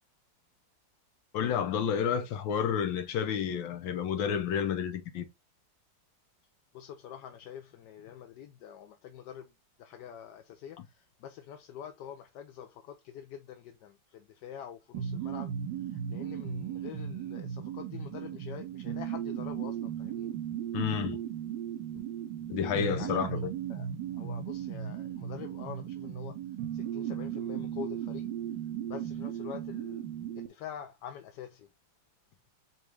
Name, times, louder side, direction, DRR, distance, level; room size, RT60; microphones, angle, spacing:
voice 1, 1.3-5.2 20.7-21.2 22.5-23.5, left 8 dB, 85° left, 1.6 m, -30 dB
voice 2, 6.7-9.5 9.8-15.5 15.9-20.3 22.9-23.4 23.7-23.9 24.1-26.4 26.7-28.3 28.9-30.0 30.4-31.7, left 9 dB, 70° left, 1.1 m, -46 dB
sound 1, 14.9-30.5, right 9 dB, 80° right, 1.4 m, -36 dB
5.0 x 3.1 x 3.4 m
omnidirectional pair, 2.0 m